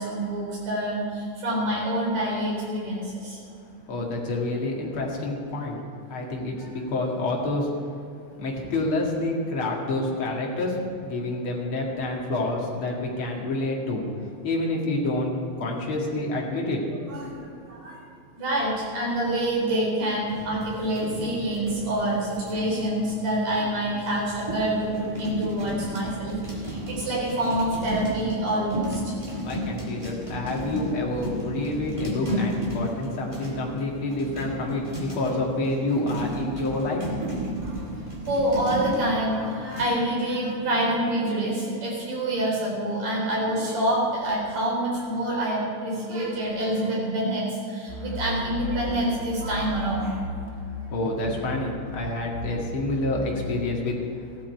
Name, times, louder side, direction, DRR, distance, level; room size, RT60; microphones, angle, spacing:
voice 1, 0.0-3.4 17.1-18.0 18.4-29.1 37.6-37.9 38.3-50.2, right 1 dB, 70° right, -4 dB, 5.3 m, -27 dB
voice 2, 3.9-5.8 6.1-7.7 8.4-14.0 14.4-16.8 29.4-37.0 50.9-54.0, left 2 dB, 50° left, -2 dB, 2.7 m, -28 dB
sound 1, 20.3-39.9, equal, 10° right, 2.0 m, -34 dB
sound 2, 47.9-51.0 51.2-53.8, left 1 dB, 85° right, 3.6 m, -35 dB
15.0 x 12.5 x 4.6 m, 2.6 s
omnidirectional pair, 3.3 m